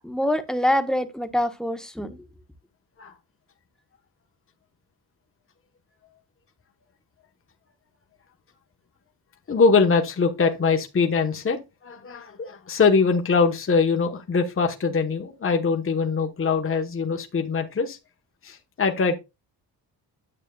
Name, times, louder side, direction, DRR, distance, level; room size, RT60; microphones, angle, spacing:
voice 1, 0.0-2.2, left 1 dB, ahead, 1.3 m, -25 dB
voice 2, 9.5-18.0 18.4-19.2, left 4 dB, 30° left, 1.3 m, -22 dB
10.0 x 8.3 x 2.4 m
cardioid pair, 105°, 40 cm